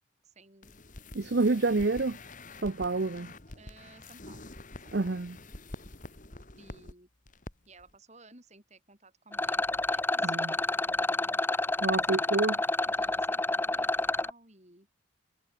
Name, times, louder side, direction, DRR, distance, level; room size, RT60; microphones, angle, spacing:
voice 1, 0.2-0.7 1.4-1.9 3.5-4.5 4.8-5.2 6.6-7.1 7.7-11.9 12.8-14.9, right 2 dB, 35° right, 5.4 m, -57 dB
sound 1, 0.6-6.9 7.3-7.5 7.8-7.9, left 2 dB, 40° left, 2.0 m, -47 dB
voice 2, 1.1-2.2 2.6-3.3 4.9-5.4 10.2-10.5 11.8-12.6, right 3 dB, 55° right, 0.7 m, -28 dB
Rattle, 9.3-14.3, left 2 dB, 10° left, 0.6 m, -29 dB
head